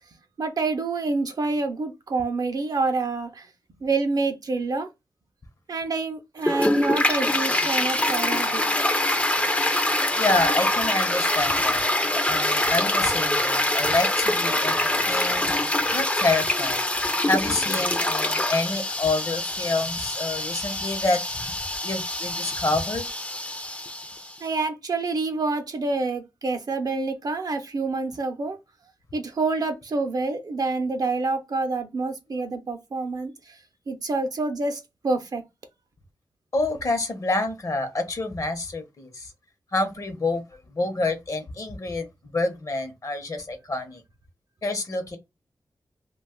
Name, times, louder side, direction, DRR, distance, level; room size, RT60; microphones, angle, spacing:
voice 1, 0.4-3.5 3.8-4.9 5.7-8.8 9.4-9.5 24.4-28.6 29.1-33.6 33.9-35.4, right 3 dB, 55° right, 0.6 m, -27 dB
Toilet flush, 6.4-24.3, left 1 dB, 15° left, 0.4 m, -25 dB
voice 2, 10.2-11.8 12.2-15.5 15.9-16.8 17.3-21.2 21.8-23.1 36.5-39.3 39.7-40.4 40.7-42.1 42.3-44.0 44.6-45.2, left 2 dB, 45° left, 0.7 m, -27 dB
2.4 x 2.2 x 3.6 m
cardioid pair, 70°, 8 cm